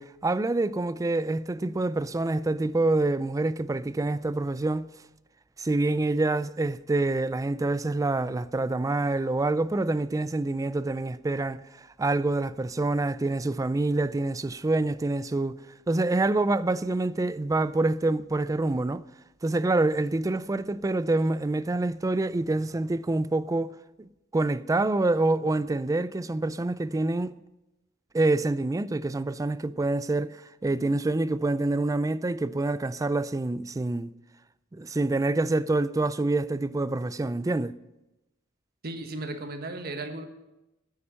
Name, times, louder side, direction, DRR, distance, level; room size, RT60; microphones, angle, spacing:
voice 1, 0.0-4.9 5.6-15.6 15.9-19.0 19.4-27.4 28.1-34.1 34.7-37.7, right 2 dB, 15° right, 0.3 m, -26 dB
voice 2, 38.8-40.2, right 2 dB, 50° right, 1.4 m, -35 dB
9.7 x 8.7 x 8.6 m
head